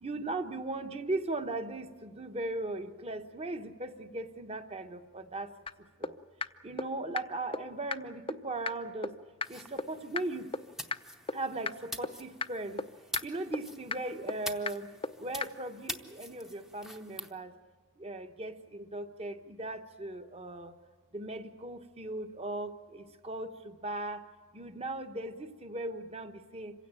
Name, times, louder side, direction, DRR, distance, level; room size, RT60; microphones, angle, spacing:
voice 1, 0.0-5.5 6.0-6.2 6.6-9.1 9.5-10.5 11.3-12.8 13.2-14.9 15.2-17.5 18.0-20.7 21.1-24.2 24.5-26.7, right 2 dB, 30° right, 8 dB, 1.1 m, -38 dB
sound 1, 5.7-5.8 6.0-6.1 6.4-6.5 6.8-6.9 7.2-7.3 7.5-7.6 7.9-8.0 8.3-8.4 8.7-8.8 9.0-9.1 9.4-9.5 9.8-9.9 10.2-10.3 10.5-10.6 10.9-11.0 11.3-11.4 11.7-11.8 12.0-12.1 12.4-12.5 12.8-12.9 13.2-13.3 13.5-13.6 13.9-14.0 14.3-14.4 14.7-14.8 15.0-15.1 15.4-15.5, left 4 dB, 25° left, 0.6 m, -32 dB
sound 2, 9.4-17.3, equal, ahead, 0.8 m, -45 dB
26.5 x 16.5 x 8.9 m, 1.5 s
head